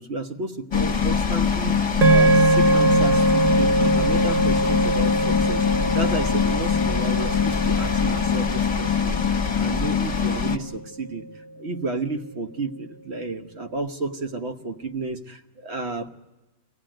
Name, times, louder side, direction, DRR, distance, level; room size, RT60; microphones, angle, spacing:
voice 1, 0.0-11.3 11.6-16.1, right 3 dB, 50° right, 7 dB, 1.4 m, -32 dB
sound 1, 0.7-10.6, left 6 dB, 25° left, 1.1 m, -23 dB
sound 2, 2.0-10.4, right 2 dB, 30° right, 1.0 m, -23 dB
24.0 x 16.5 x 8.9 m, 1.1 s
omnidirectional pair, 1.5 m